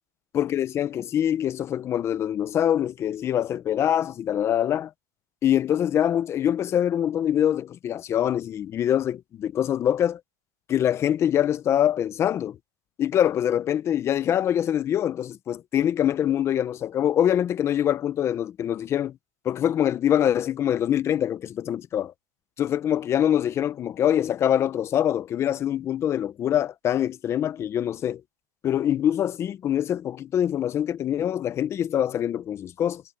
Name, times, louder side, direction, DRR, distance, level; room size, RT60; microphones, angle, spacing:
voice 1, 0.3-4.9 5.4-10.2 10.7-12.6 13.0-19.2 19.4-22.1 22.6-28.2 28.6-33.0, left 10 dB, 25° left, 0.9 m, -24 dB
supercardioid pair, 135°, 10 cm